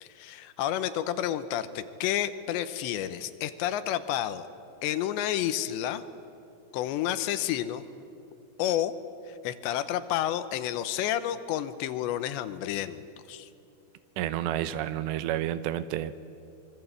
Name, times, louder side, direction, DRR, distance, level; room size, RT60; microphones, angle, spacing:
voice 1, 0.0-4.5 4.8-6.0 6.7-7.8 8.6-8.9 9.3-13.5, left 11 dB, 80° left, 12 dB, 3.1 m, -30 dB
voice 2, 14.2-16.2, right 12 dB, 80° right, 13 dB, 2.9 m, -30 dB
25.0 x 23.5 x 8.3 m, 2.8 s
omnidirectional pair, 5.2 m